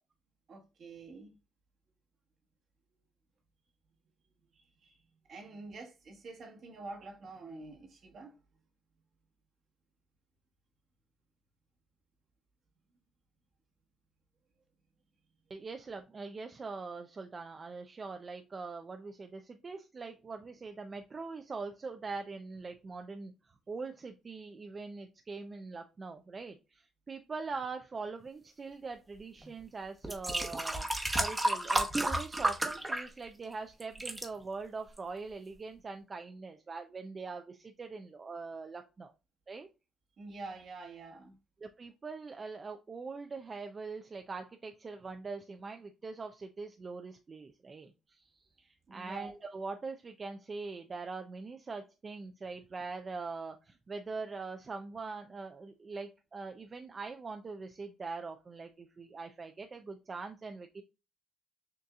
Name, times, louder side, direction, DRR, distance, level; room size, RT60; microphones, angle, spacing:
voice 1, 0.5-1.4 4.5-5.0 5.3-8.3 40.2-41.4 48.9-49.3, right 3 dB, 60° right, 1.4 m, -47 dB
voice 2, 15.5-23.3 23.7-30.9 31.2-39.1 39.5-39.7 41.6-48.3 48.6-60.8, right 4 dB, 40° right, 0.5 m, -42 dB
sound 1, 29.4-29.5 30.0-33.5 33.8-34.3 35.0-35.1, right 1 dB, 20° right, 1.0 m, -32 dB
6.5 x 2.7 x 2.3 m
supercardioid pair, 65°, 0 cm